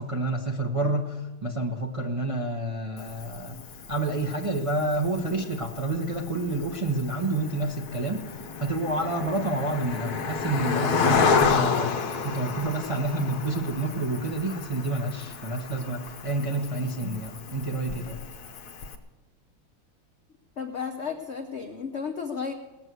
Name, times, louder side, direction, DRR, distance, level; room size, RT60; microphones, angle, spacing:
voice 1, 0.0-3.6 3.9-8.3 8.6-11.9 12.2-18.2, right 2 dB, 25° right, 0 dB, 0.7 m, -29 dB
Cricket, 3.0-19.0, left 5 dB, 55° left, 1.3 m, -31 dB
voice 2, 20.6-22.5, left 6 dB, 70° left, 4 dB, 0.6 m, -33 dB
18.5 x 7.7 x 8.2 m, 1.1 s
omnidirectional pair, 2.4 m